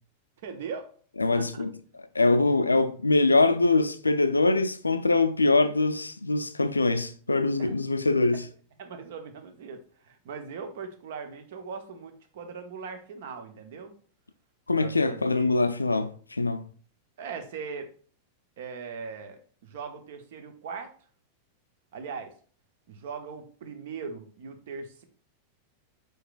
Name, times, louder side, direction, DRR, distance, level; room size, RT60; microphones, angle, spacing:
voice 1, 0.4-0.9 1.3-1.7 7.6-7.7 8.3-8.4 8.8-13.9 14.8-15.5 17.2-17.9 18.6-20.9 21.9-22.3 22.9-25.0, right 5 dB, 55° right, 0.8 m, -40 dB
voice 2, 1.2-1.7 2.1-8.4 14.7-16.7, left 3 dB, 80° left, 0.3 m, -23 dB
4.7 x 4.6 x 2.4 m
figure-of-eight pair, 90°, 0 cm